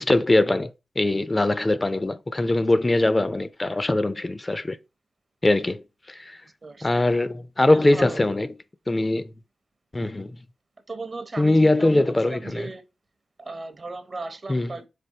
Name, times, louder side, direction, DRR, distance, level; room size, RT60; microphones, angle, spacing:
voice 1, 0.0-4.8 5.4-5.8 6.1-6.4 6.8-8.5 8.9-9.3 9.9-10.4 11.4-12.7 14.5-14.7, left 2 dB, 30° left, 0.3 m, -22 dB
voice 2, 6.6-7.1 7.7-8.2 10.9-12.8 13.4-14.9, right 3 dB, 45° right, 0.6 m, -37 dB
3.7 x 3.4 x 2.7 m
cardioid pair, 50°, 0 cm